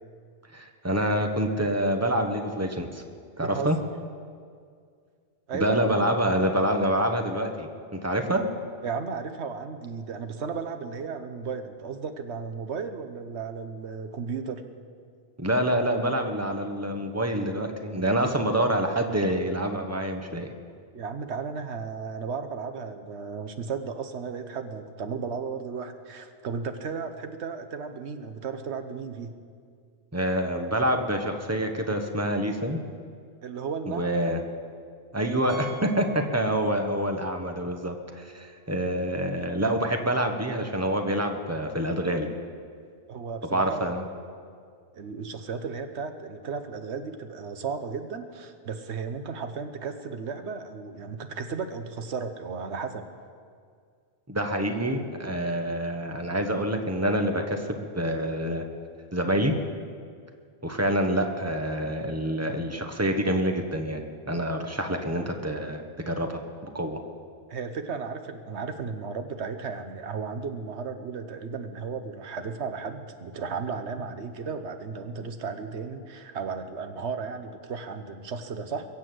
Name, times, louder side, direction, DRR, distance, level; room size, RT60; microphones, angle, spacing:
voice 1, 0.5-3.0 3.4-3.8 5.5-8.5 15.4-20.5 30.1-32.8 33.9-34.4 35.1-42.3 43.5-44.0 54.3-58.6 59.1-59.5 60.6-67.0, right 1 dB, 15° right, 4 dB, 1.1 m, -27 dB
voice 2, 3.4-3.9 5.5-5.9 8.2-8.4 8.8-14.6 20.9-29.3 33.4-34.3 43.1-44.1 44.9-53.1 67.5-78.9, right 5 dB, 85° right, 8 dB, 1.3 m, -34 dB
Piano, 35.5-37.1 37.4-37.5 38.1-38.2 38.4-38.5 40.6-40.7, right 5 dB, 45° right, 3.4 m, -45 dB
22.0 x 7.4 x 7.8 m, 2.2 s
omnidirectional pair, 1.1 m